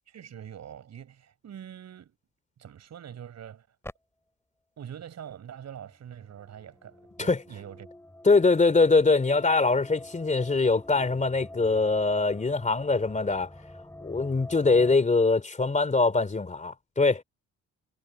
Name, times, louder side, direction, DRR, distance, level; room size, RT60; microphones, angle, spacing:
voice 1, 0.1-2.2 2.6-3.7 4.8-7.9, right 9 dB, 60° right, 7.5 m, -44 dB
sound 1, 3.8-3.9 5.8-15.0, left 1 dB, 10° left, 6.9 m, -47 dB
voice 2, 8.2-13.5 14.0-17.2, left 3 dB, 25° left, 2.9 m, -23 dB
cardioid pair, 90°, 30 cm